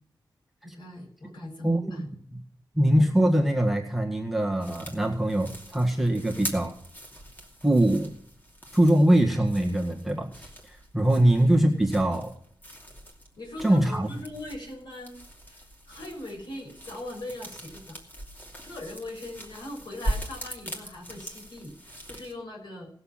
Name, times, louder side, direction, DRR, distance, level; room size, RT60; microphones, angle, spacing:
voice 1, 0.6-2.0 13.4-15.2 15.5-18.0 18.6-22.9, left 1 dB, 65° left, -1 dB, 6.2 m, -40 dB
voice 2, 2.7-6.7 7.6-8.1 8.7-12.3 13.6-14.1, right 1 dB, ahead, 1 dB, 1.8 m, -23 dB
sound 1, 4.6-22.3, equal, 20° left, 2.6 m, -41 dB
19.0 x 7.0 x 5.8 m, 0.62 s
wide cardioid pair, 140°, 8 cm